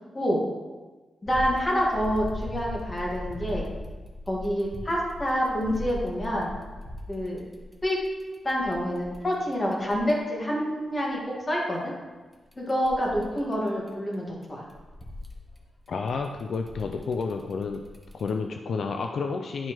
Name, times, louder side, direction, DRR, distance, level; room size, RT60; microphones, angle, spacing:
voice 1, 1.2-3.7 4.3-6.5 7.1-7.4 7.8-8.0 8.4-11.9 12.6-14.6, equal, 25° left, -3 dB, 1.8 m, -27 dB
sound 1, 1.2-10.1 12.3-14.1 14.4-18.3, left 1 dB, 5° left, 0.9 m, -39 dB
voice 2, 15.9-17.8 18.1-19.7, left 4 dB, 65° left, 5 dB, 0.4 m, -30 dB
10.5 x 4.3 x 3.0 m, 1.3 s
wide cardioid pair, 115°, 0 cm